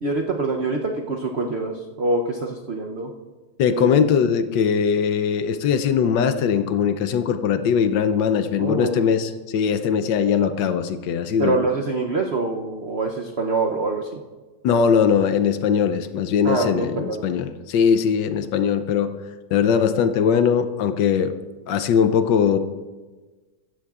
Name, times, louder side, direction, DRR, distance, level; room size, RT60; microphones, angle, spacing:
voice 1, 0.0-3.1 3.7-4.0 8.6-9.0 11.4-14.2 16.4-17.2, right 3 dB, 90° right, 2 dB, 0.5 m, -25 dB
voice 2, 3.6-11.6 14.6-19.1 19.5-21.3 21.7-22.6, left 7 dB, 70° left, 10 dB, 1.2 m, -20 dB
16.0 x 12.5 x 2.4 m, 1.3 s
omnidirectional pair, 2.2 m